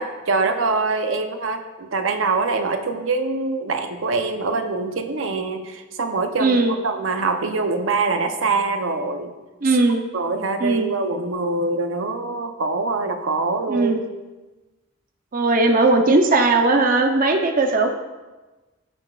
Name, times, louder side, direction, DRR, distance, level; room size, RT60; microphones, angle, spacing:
voice 1, 0.0-9.3 9.6-9.8 10.1-13.9, right 3 dB, 80° right, 6 dB, 0.7 m, -24 dB
voice 2, 6.4-6.7 9.6-10.0 10.6-10.9 13.7-14.0 15.3-17.9, right 2 dB, 45° right, 4 dB, 0.7 m, -18 dB
15.5 x 6.9 x 2.4 m, 1.2 s
head